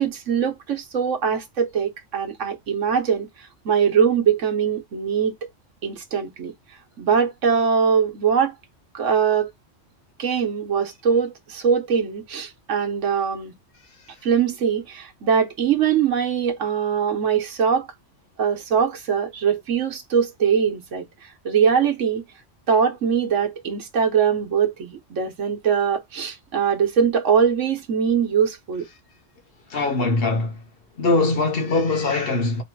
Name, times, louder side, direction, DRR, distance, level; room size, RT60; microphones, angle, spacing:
voice 1, 0.0-5.3 5.8-6.5 7.0-8.6 8.9-9.5 10.2-13.5 14.2-17.9 18.4-21.1 21.4-22.2 22.7-28.8, right 7 dB, 80° right, 1.4 m, -22 dB
voice 2, 29.7-30.6 31.0-32.6, left 3 dB, 55° left, 1.1 m, -22 dB
3.2 x 2.6 x 4.5 m
omnidirectional pair, 1.3 m